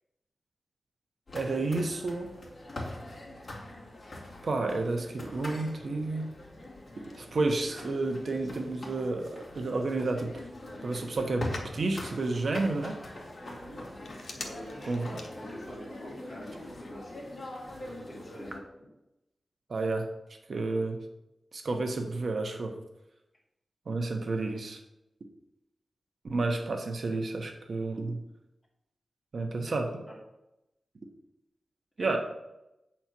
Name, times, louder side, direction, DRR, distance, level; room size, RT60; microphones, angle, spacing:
sound 1, 1.3-18.6, left 1 dB, 40° left, 2.4 m, -43 dB
voice 1, 1.3-2.3 4.4-6.3 7.2-10.3 10.8-13.0 14.8-15.1 19.7-20.1 20.5-21.0 21.5-22.7 23.9-24.8 26.2-28.2 29.3-29.9 32.0-32.2, right 3 dB, 60° right, 4 dB, 1.1 m, -30 dB
Telephone, 6.3-15.9, left 3 dB, 80° left, 1.1 m, -50 dB
voice 2, 13.4-13.8 14.4-17.3 18.1-18.6 24.4-24.5 29.9-30.1 32.0-32.2, equal, 15° left, -7 dB, 2.8 m, -45 dB
8.7 x 4.4 x 6.0 m, 0.90 s
wide cardioid pair, 130°, 0 cm